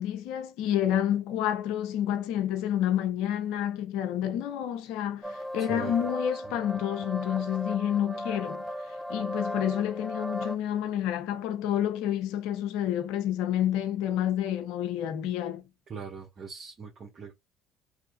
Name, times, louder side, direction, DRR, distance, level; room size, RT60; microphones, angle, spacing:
voice 1, 0.0-8.6 9.1-15.6, left 10 dB, 70° left, 0.6 m, -29 dB
sound 1, 5.2-10.6, equal, 5° right, 0.6 m, -36 dB
voice 2, 5.6-6.0 6.4-6.8 15.9-17.3, right 6 dB, 45° right, 1.2 m, -42 dB
3.1 x 2.6 x 2.2 m
hypercardioid pair, 70°, 0 cm